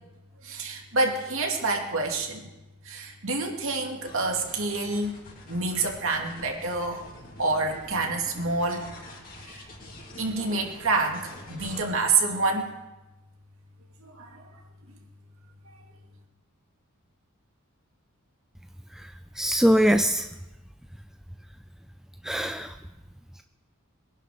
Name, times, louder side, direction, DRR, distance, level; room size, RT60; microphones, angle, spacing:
voice 1, 0.4-2.5 2.8-5.2 5.5-7.0 7.4-8.9 9.5-9.6 10.2-12.7 14.0-14.5, right 3 dB, 65° right, 2 dB, 2.5 m, -27 dB
sound 1, 4.0-11.8, left 1 dB, 40° left, 3.1 m, -46 dB
voice 2, 18.9-20.3 22.2-22.8, equal, ahead, 7 dB, 0.4 m, -23 dB
22.5 x 11.0 x 5.0 m, 1.0 s
head